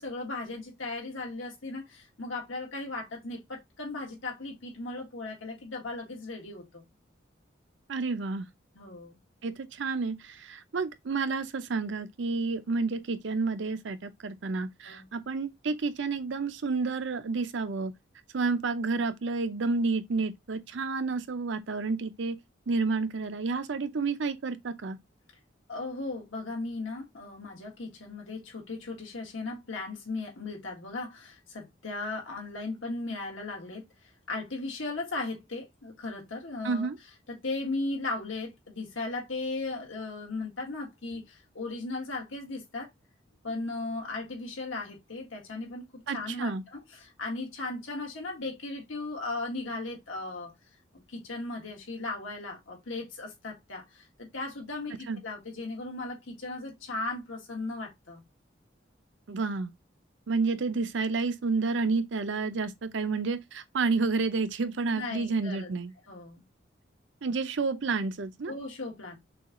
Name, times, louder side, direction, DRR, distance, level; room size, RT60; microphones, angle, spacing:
voice 1, 0.0-6.8 8.8-9.2 14.8-15.1 25.7-33.9 34.3-36.9 37.3-42.9 43.4-45.9 46.1-50.5 51.1-58.2 64.9-65.7 66.1-66.4 68.5-69.2, left 2 dB, 85° left, 1.9 m, -37 dB
voice 2, 7.9-8.5 9.4-17.9 18.3-22.4 22.7-25.0 36.6-37.0 46.1-46.6 55.1-55.2 59.3-59.7 60.3-65.9 67.2-68.5, right 4 dB, 70° right, 0.6 m, -30 dB
6.2 x 2.4 x 3.0 m
head